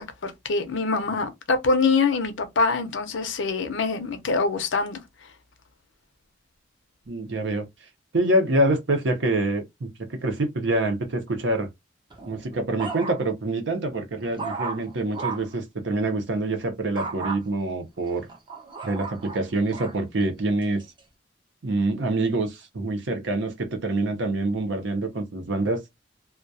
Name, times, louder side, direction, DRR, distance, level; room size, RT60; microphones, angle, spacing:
voice 1, 0.0-5.0, left 4 dB, 75° left, 0.6 m, -24 dB
voice 2, 7.1-7.7 8.1-11.7 12.3-18.3 18.8-20.8 21.6-25.8, right 2 dB, 70° right, 0.7 m, -26 dB
sound 1, 12.1-13.5 13.9-15.6 17.0-17.4 18.0-20.0 20.6-21.0, right 4 dB, 25° right, 0.6 m, -35 dB
2.3 x 2.1 x 2.6 m
head